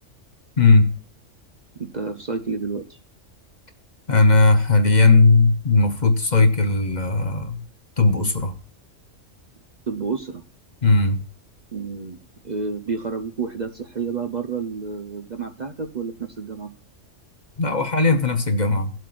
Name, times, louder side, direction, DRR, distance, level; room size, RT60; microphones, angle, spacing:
voice 1, 0.6-0.9 4.1-7.6 8.0-8.5 10.8-11.2 17.6-18.9, left 3 dB, 40° left, 7 dB, 1.0 m, -17 dB
voice 2, 1.7-3.0 9.9-10.4 11.7-12.2 12.4-16.7, right 5 dB, 40° right, 6 dB, 0.7 m, -30 dB
19.0 x 7.6 x 2.5 m, 0.41 s
omnidirectional pair, 1.3 m